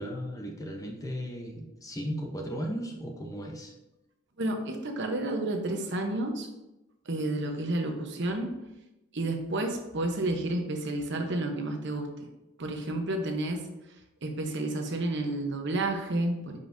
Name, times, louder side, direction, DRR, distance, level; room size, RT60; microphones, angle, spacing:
voice 1, 0.0-3.7, equal, 15° left, 1 dB, 0.8 m, -36 dB
voice 2, 4.4-6.5 7.1-8.5 9.1-12.3 12.6-13.7 14.2-16.6, right 2 dB, 55° right, 4 dB, 1.0 m, -31 dB
10.0 x 5.5 x 2.7 m, 0.97 s
head